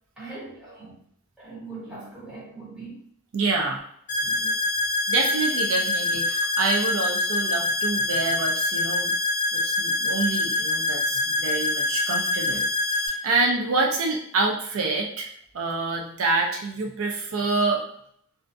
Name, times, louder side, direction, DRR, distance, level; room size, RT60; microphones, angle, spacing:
voice 1, 0.2-1.0 1.4-3.0 4.2-4.6, right 3 dB, 5° right, -8 dB, 0.9 m, -41 dB
voice 2, 3.3-3.8 5.1-9.1 9.5-12.6 12.9-15.3 15.5-17.8, right 3 dB, 75° right, 0 dB, 0.4 m, -27 dB
sound 1, 4.1-13.1, left 2 dB, 35° left, 0.6 m, -25 dB
2.5 x 2.2 x 2.5 m, 0.64 s
head